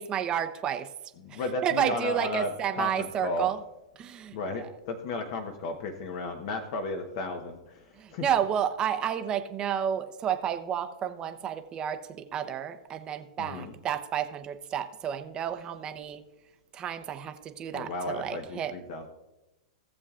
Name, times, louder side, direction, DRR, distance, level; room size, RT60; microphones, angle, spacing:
voice 1, 0.0-3.6 4.0-4.7 7.9-16.2 16.7-18.7, right 9 dB, 25° right, 8 dB, 0.7 m, -31 dB
voice 2, 1.2-3.5 4.3-8.2 13.4-13.7 17.7-19.1, left 2 dB, 50° left, 4 dB, 1.0 m, -34 dB
17.5 x 7.1 x 2.5 m, 0.98 s
hypercardioid pair, 140°, 4 cm